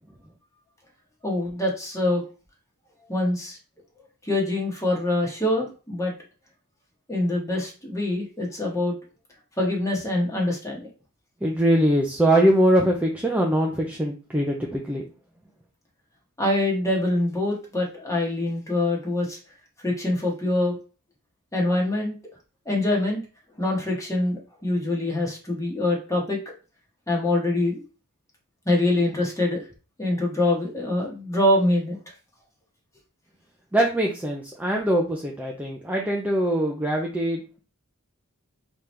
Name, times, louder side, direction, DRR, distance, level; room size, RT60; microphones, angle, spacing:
voice 1, 1.2-2.2 3.1-3.6 4.2-6.1 7.1-8.9 9.6-10.8 16.4-19.4 19.8-20.8 21.5-22.1 22.7-23.2 23.6-26.4 27.1-27.8 28.6-29.6 30.0-32.0, left 1 dB, 15° left, -1 dB, 1.2 m, -24 dB
voice 2, 11.4-15.0 33.7-37.6, right 1 dB, 5° right, -1 dB, 0.5 m, -22 dB
3.7 x 3.0 x 3.2 m, 0.34 s
head